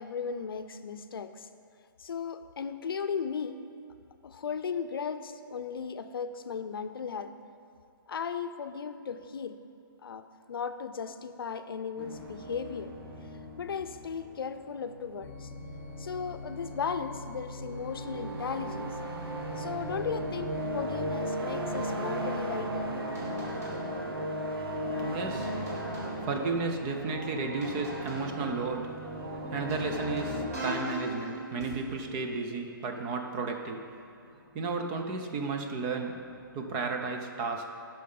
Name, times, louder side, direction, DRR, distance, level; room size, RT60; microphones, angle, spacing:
voice 1, 0.0-1.5 2.0-3.7 4.2-7.4 8.1-9.6 10.0-13.0 13.6-15.5 16.0-18.9 19.6-22.9 24.9-25.1, left 6 dB, 75° left, 10 dB, 0.6 m, -36 dB
sound 1, 12.0-30.5, right 1 dB, 80° right, 1.4 m, -37 dB
sound 2, 15.2-20.7, left 2 dB, 30° left, 1.0 m, -44 dB
sound 3, 21.7-24.2 24.8-26.5 26.9-28.6 29.0-31.8, right 1 dB, 45° right, 2.7 m, -39 dB
voice 2, 24.6-34.0 34.5-36.2 36.5-37.7, right 4 dB, 15° right, 4 dB, 0.5 m, -34 dB
11.5 x 5.7 x 5.4 m, 2.5 s
hypercardioid pair, 170°, 12 cm